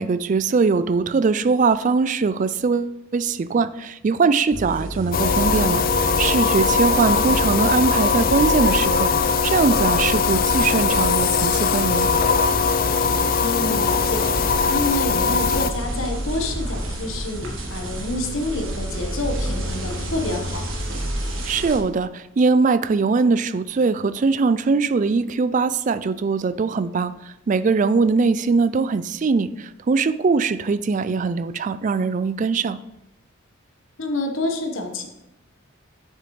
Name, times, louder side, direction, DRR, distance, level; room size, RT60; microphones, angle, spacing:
voice 1, 0.0-12.1 21.5-32.8, right 4 dB, 35° right, 14 dB, 0.3 m, -21 dB
sound 1, 4.5-21.8, right 1 dB, 70° right, 1.7 m, -31 dB
sound 2, 5.1-15.7, left 5 dB, 45° left, 0.5 m, -20 dB
voice 2, 13.4-14.4 14.7-20.6 34.0-35.1, left 2 dB, 70° left, 3 dB, 1.3 m, -28 dB
9.0 x 6.9 x 3.3 m, 0.88 s
head